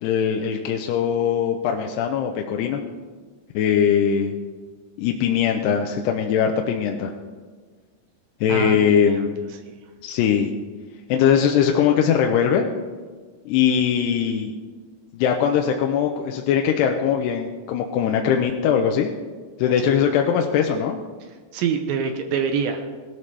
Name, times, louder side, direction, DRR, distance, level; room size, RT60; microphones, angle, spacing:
voice 1, 0.0-2.8 3.5-4.3 5.0-7.1 8.4-9.4 10.0-10.5 11.1-12.7 13.5-14.6 15.1-19.1 19.6-21.0, left 8 dB, 80° left, 3 dB, 2.7 m, -21 dB
voice 2, 8.5-9.3 19.8-20.0 21.5-22.9, right 6 dB, 75° right, 6 dB, 2.2 m, -25 dB
18.5 x 12.5 x 3.3 m, 1.5 s
omnidirectional pair, 4.9 m